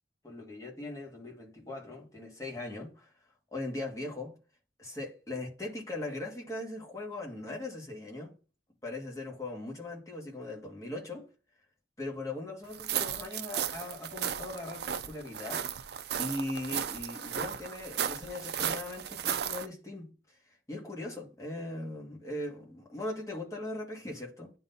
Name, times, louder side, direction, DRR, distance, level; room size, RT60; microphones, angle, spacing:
voice 1, 0.2-3.1 3.5-4.3 4.8-8.3 8.8-11.3 12.0-15.7 16.2-24.5, left 2 dB, 20° left, 1.8 m, -39 dB
sound 1, 12.7-19.7, right 8 dB, 65° right, 0.5 m, -35 dB
10.0 x 3.9 x 2.7 m
head